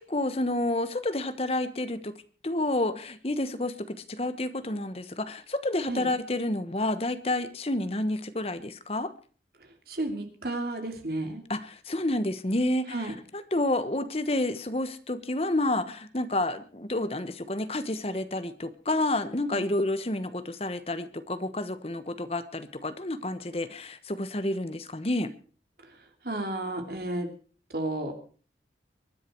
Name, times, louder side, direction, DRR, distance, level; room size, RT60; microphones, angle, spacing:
voice 1, 0.0-2.1 2.4-9.1 11.5-25.3, left 1 dB, 35° left, 12 dB, 1.1 m, -29 dB
voice 2, 9.9-11.4 12.9-13.2 19.5-19.7 26.2-27.3 27.7-28.1, right 1 dB, 60° right, 4 dB, 3.1 m, -32 dB
23.0 x 10.0 x 4.6 m, 0.40 s
head